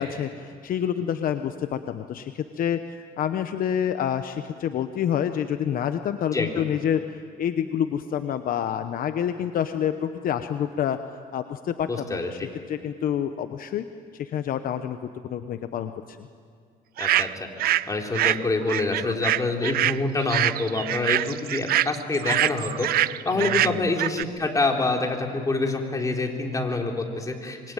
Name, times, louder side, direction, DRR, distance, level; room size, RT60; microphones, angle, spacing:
voice 1, 0.0-11.0 11.3-12.4 12.7-13.8 14.1-16.3 23.3-23.9, left 9 dB, 55° left, 9 dB, 1.0 m, -28 dB
voice 2, 6.3-6.6 11.9-12.5 17.0-17.3 17.6-22.9 23.3-27.7, left 3 dB, 20° left, 1 dB, 3.7 m, -26 dB
sound 1, 17.0-17.9 18.1-24.2, right 13 dB, 60° right, 0.6 m, -24 dB
26.0 x 23.0 x 9.1 m, 2.2 s
cardioid pair, 110°, 17 cm